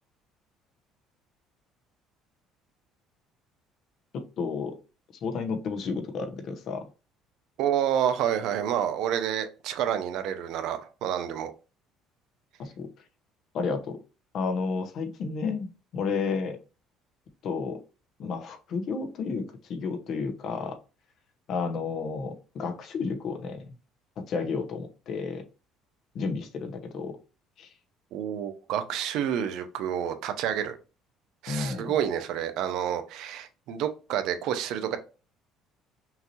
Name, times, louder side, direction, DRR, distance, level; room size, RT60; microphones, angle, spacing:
voice 1, 4.1-4.8 5.2-6.8 12.6-12.9 13.5-14.0 14.3-16.6 17.4-17.8 18.2-20.8 21.5-23.7 24.2-25.4 26.1-27.1 27.6-27.7 31.5-31.9, left 5 dB, 55° left, 7 dB, 1.0 m, -31 dB
voice 2, 7.6-11.5 28.1-30.8 31.4-35.0, right 9 dB, 70° right, 9 dB, 0.7 m, -29 dB
5.7 x 2.8 x 2.9 m, 0.33 s
cardioid pair, 115°, 0 cm